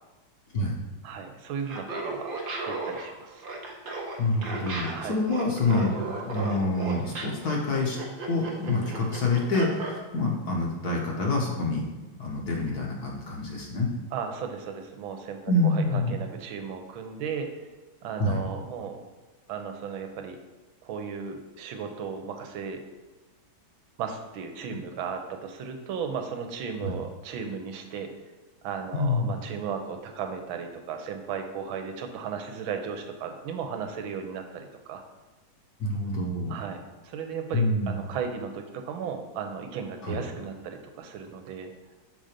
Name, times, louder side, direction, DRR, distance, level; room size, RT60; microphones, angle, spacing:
voice 1, 1.0-2.3 2.7-3.4 4.9-5.2 14.1-17.5 18.0-19.0 19.5-20.4 20.8-22.8 24.0-28.1 28.6-35.0 36.5-41.7, right 6 dB, 85° right, 5 dB, 1.5 m, -35 dB
Laughter, 1.7-10.0, right 3 dB, 55° right, 0.6 m, -35 dB
voice 2, 4.2-5.9 6.2-8.0 8.3-11.9 12.2-13.9 15.5-16.2 18.2-18.4 26.8-26.9 28.9-29.3 35.8-36.5 37.5-38.0 40.0-40.2, left 2 dB, 55° left, -1 dB, 1.4 m, -27 dB
5.9 x 3.8 x 5.0 m, 1.2 s
omnidirectional pair, 2.2 m